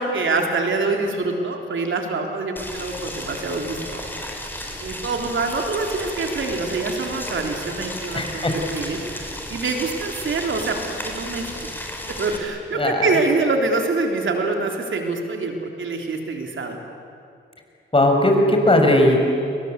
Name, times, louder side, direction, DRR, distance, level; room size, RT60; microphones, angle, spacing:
voice 1, 0.0-4.0 4.3-4.4 4.8-11.5 12.1-16.8, right 3 dB, 75° right, 2 dB, 3.7 m, -25 dB
Boiling, 2.6-12.4, left 1 dB, 10° left, 5.8 m, -34 dB
voice 2, 8.1-8.5 12.7-13.1 17.9-19.2, left 1 dB, 25° left, 2 dB, 6.5 m, -17 dB
30.0 x 23.5 x 8.3 m, 2.5 s
cardioid pair, 55°, 21 cm